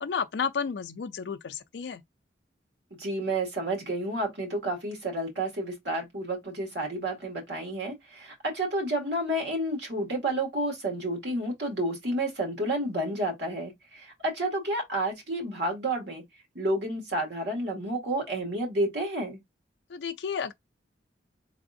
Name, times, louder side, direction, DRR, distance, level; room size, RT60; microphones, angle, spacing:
voice 1, 0.0-2.0 19.9-20.5, left 6 dB, 70° left, 0.4 m, -32 dB
voice 2, 3.0-16.2 16.5-19.4, right 1 dB, 65° right, 2.0 m, -30 dB
3.8 x 3.4 x 2.5 m
head